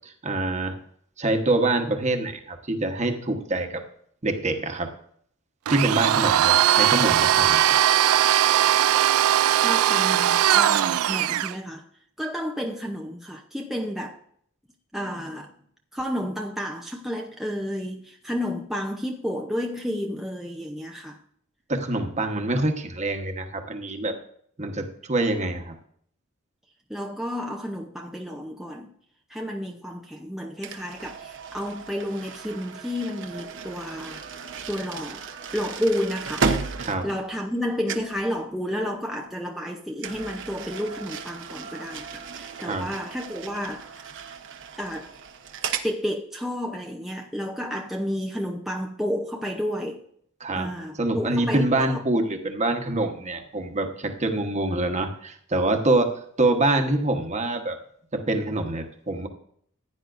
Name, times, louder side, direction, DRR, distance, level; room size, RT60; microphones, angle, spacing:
voice 1, 0.0-0.8 1.2-3.8 4.2-4.9 5.7-7.7 21.7-24.2 24.6-25.8 36.8-37.1 42.6-42.9 50.4-50.7 51.0-57.8 58.1-59.3, right 2 dB, 35° right, 1.2 m, -25 dB
Domestic sounds home sounds, 5.7-11.5, right 11 dB, 75° right, 0.3 m, -20 dB
voice 2, 9.6-11.8 12.2-14.2 14.9-15.5 15.9-21.2 26.9-28.9 29.3-34.3 34.7-35.3 35.5-36.5 37.0-44.1 44.8-45.1 45.8-50.0 50.6-52.0, equal, ahead, 0.6 m, -31 dB
sound 1, 30.6-37.6 37.9-38.2 40.0-45.9, right 5 dB, 60° right, 1.0 m, -34 dB
15.0 x 9.7 x 2.6 m
head